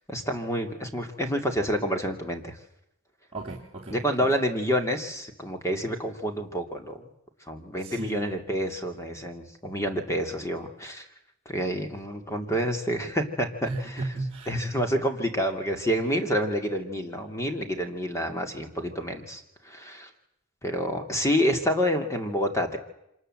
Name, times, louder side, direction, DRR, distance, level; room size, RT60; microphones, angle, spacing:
voice 1, 0.1-2.6 3.9-7.1 7.5-11.0 11.5-14.0 14.5-20.1 20.6-22.8, equal, 15° left, 5 dB, 2.7 m, -28 dB
voice 2, 3.3-4.3 7.8-8.4 13.6-14.5, right 2 dB, 30° right, -4 dB, 2.9 m, -35 dB
26.0 x 20.0 x 7.9 m, 0.82 s
head